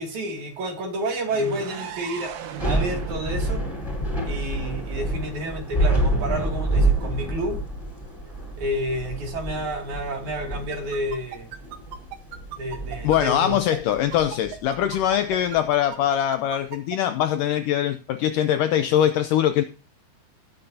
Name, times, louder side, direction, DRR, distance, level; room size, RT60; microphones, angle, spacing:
voice 1, 0.0-3.7 4.2-7.6 8.6-11.5 12.6-13.6, right 1 dB, 50° right, 3.6 m, -30 dB
sound 1, 1.3-5.1, right 9 dB, 75° right, 2.6 m, -38 dB
Thunder / Rain, 2.4-15.6, right 1 dB, 5° left, 4.2 m, -28 dB
sound 2, 10.7-17.0, right 10 dB, 90° right, 3.2 m, -36 dB
voice 2, 13.0-19.6, left 11 dB, 80° left, 1.9 m, -22 dB
18.5 x 9.0 x 2.8 m
omnidirectional pair, 4.5 m